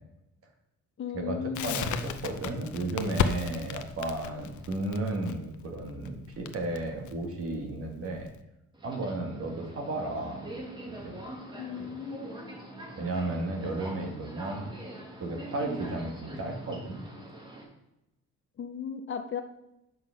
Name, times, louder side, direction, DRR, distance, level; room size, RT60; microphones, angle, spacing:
voice 1, 1.0-1.8 11.6-12.6 18.6-19.4, left 7 dB, 40° left, 6 dB, 0.7 m, -36 dB
Crackle, 1.5-8.4, left 8 dB, 75° left, 0.7 m, -35 dB
voice 2, 1.6-8.3 8.8-10.5 10.9-11.1 11.4-11.9 12.9-14.7 15.2-17.0, right 2 dB, 50° right, 3 dB, 1.7 m, -34 dB
Subway metro underground, 8.7-17.6, right 1 dB, 15° right, 1.6 m, -43 dB
7.9 x 5.8 x 5.7 m, 0.89 s
cardioid pair, 155°, 30 cm